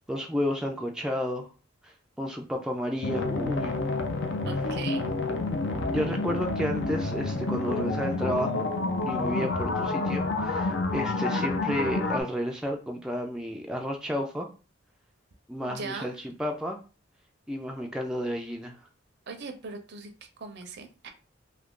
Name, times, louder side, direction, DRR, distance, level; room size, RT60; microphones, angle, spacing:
voice 1, 0.1-1.5 1.8-3.8 5.9-8.7 9.0-14.5 15.5-16.8 17.5-18.8, equal, 5° right, 1 dB, 0.3 m, -31 dB
sound 1, 3.0-12.2, left 3 dB, 65° left, 0.5 m, -29 dB
voice 2, 4.5-5.1 15.6-16.1 19.3-20.1 20.4-21.1, right 4 dB, 60° right, 6 dB, 0.6 m, -39 dB
2.7 x 2.5 x 3.6 m, 0.34 s
head